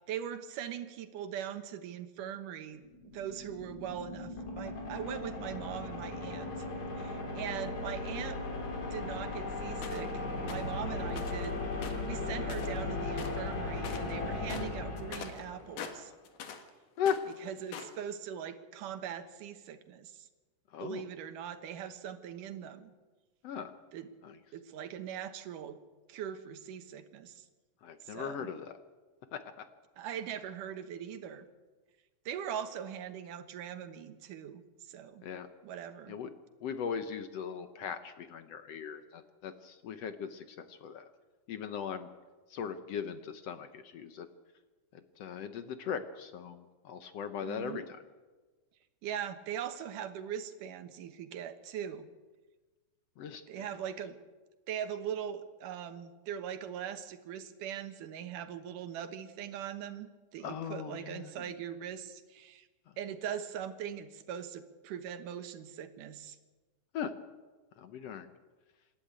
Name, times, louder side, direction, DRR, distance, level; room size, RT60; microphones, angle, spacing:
voice 1, 0.0-2.8 3.1-6.6 7.0-8.4 8.9-11.6 12.0-16.1 17.4-20.3 20.8-22.9 23.9-24.1 24.5-25.8 26.1-27.5 28.0-28.5 30.0-31.5 32.3-34.6 34.9-35.2 35.6-36.2 47.4-47.8 49.0-52.1 53.5-54.2 54.7-62.7 63.0-66.4, right 9 dB, 85° right, 9 dB, 2.8 m, -41 dB
sound 1, 2.8-15.9, left 2 dB, 50° left, 4.0 m, -37 dB
sound 2, 9.8-10.1 10.5-10.7 11.1-11.5 11.8-12.9 13.1-13.5 13.8-14.1 14.4-16.7 17.0-18.0, left 7 dB, 85° left, 3.2 m, -44 dB
voice 2, 20.7-21.0 23.4-23.7 24.2-24.3 27.8-28.8 29.3-29.4 35.2-35.5 36.1-36.3 36.6-41.0 41.5-42.1 42.5-44.3 44.9-47.8 53.2-53.7 60.4-61.3 66.9-67.1 67.8-68.3, left 7 dB, 65° left, 9 dB, 1.8 m, -38 dB
27.0 x 12.0 x 8.8 m, 1.3 s
omnidirectional pair, 3.6 m